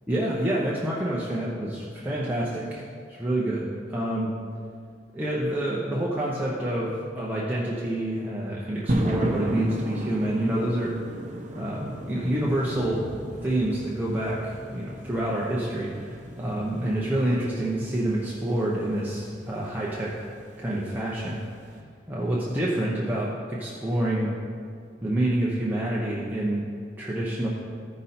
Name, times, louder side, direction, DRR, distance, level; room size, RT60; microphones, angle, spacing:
voice 1, 0.1-4.3 5.1-11.0 11.5-13.1 13.4-20.3 20.6-21.4 22.1-24.4 25.0-26.7 27.0-27.5, right 1 dB, 10° right, -6 dB, 0.8 m, -27 dB
sound 1, 8.9-21.8, equal, 45° right, 0.9 m, -35 dB
14.0 x 5.4 x 4.3 m, 2.2 s
head